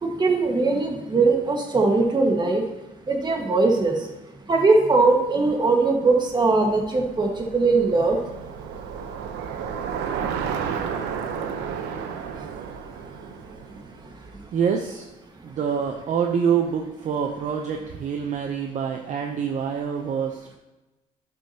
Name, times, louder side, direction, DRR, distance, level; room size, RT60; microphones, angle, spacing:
voice 1, 0.0-2.6 3.1-4.0 4.5-8.2, right 3 dB, 25° right, 1 dB, 1.7 m, -20 dB
Bicycle, 6.2-14.5, right 7 dB, 90° right, 0.9 m, -32 dB
voice 2, 14.5-15.0 15.4-20.5, right 7 dB, 45° right, 3 dB, 0.8 m, -26 dB
11.5 x 6.3 x 2.9 m, 1.0 s
cardioid pair, 110°, 17 cm